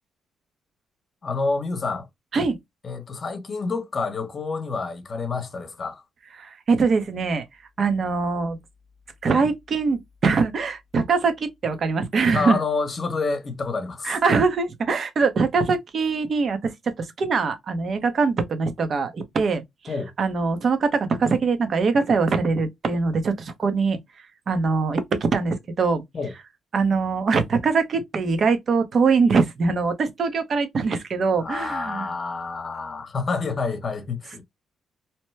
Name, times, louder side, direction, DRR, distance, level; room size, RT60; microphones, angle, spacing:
voice 1, 1.2-2.1 2.8-6.0 12.3-14.2 19.9-20.1 26.1-26.3 31.4-34.4, left 4 dB, 40° left, 0.9 m, -28 dB
voice 2, 6.4-7.4 7.8-8.6 9.2-12.6 14.0-24.0 24.5-26.0 26.7-32.1, right 4 dB, 50° right, 0.8 m, -23 dB
2.9 x 2.2 x 3.1 m
cardioid pair, 95°, 0 cm